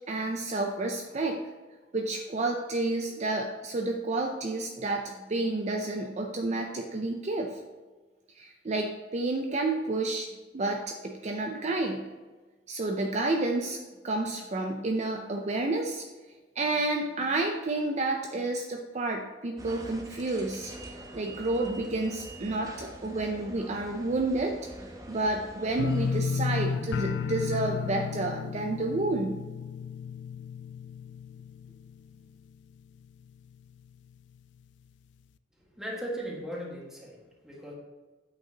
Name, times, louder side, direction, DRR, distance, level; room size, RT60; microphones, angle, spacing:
voice 1, 0.1-1.4 1.9-7.6 8.4-10.3 10.5-12.0 12.7-13.8 14.0-16.1 16.6-29.4, right 2 dB, 40° right, 2 dB, 0.5 m, -30 dB
sound 1, 19.6-26.2, right 1 dB, 20° right, 0.9 m, -45 dB
sound 2, 25.8-32.6 32.9-33.5 33.9-34.0, left 6 dB, 70° left, 0.3 m, -33 dB
voice 2, 35.6-37.7, equal, 5° right, -4 dB, 1.6 m, -38 dB
8.3 x 6.0 x 2.9 m, 1.3 s
head